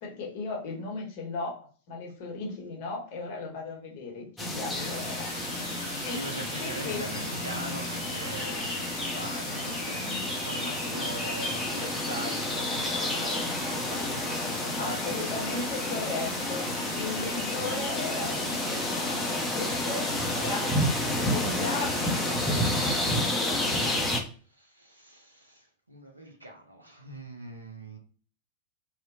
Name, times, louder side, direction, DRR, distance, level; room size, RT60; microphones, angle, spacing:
voice 1, 0.0-1.6 1.9-5.3 5.6-6.3 6.6-7.0 14.8-20.1 20.4-20.7 21.2-22.1 22.4-23.8, left 3 dB, 45° left, 0.8 m, -37 dB
sound 1, 4.4-24.2, left 1 dB, 10° left, 0.6 m, -30 dB
sound 2, 4.7-23.2, equal, 90° left, 0.4 m, -40 dB
voice 2, 6.0-15.9 17.6-17.7 20.1-22.1 24.5-28.0, right 1 dB, 85° right, 0.4 m, -42 dB
2.7 x 2.1 x 2.6 m
figure-of-eight pair, 90°, 0 cm